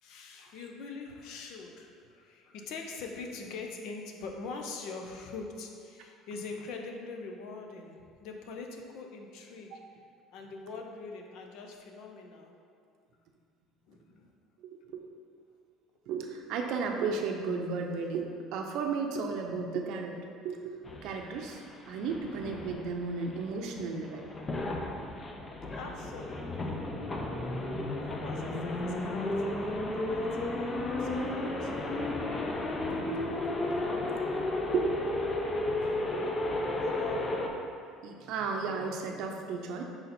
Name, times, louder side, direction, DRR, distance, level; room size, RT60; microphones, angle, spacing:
voice 1, 0.0-9.8 10.3-12.5 13.9-14.3 25.7-26.8 28.0-32.1 36.8-37.5, left 4 dB, 60° left, 3 dB, 0.6 m, -43 dB
voice 2, 14.6-15.0 16.1-21.6 21.9-24.2 34.7-34.9 38.0-39.8, right 5 dB, 60° right, 3 dB, 0.6 m, -34 dB
sound 1, 20.8-37.5, left 2 dB, 20° left, 0.4 m, -33 dB
5.6 x 4.0 x 4.3 m, 2.3 s
cardioid pair, 165°, 0 cm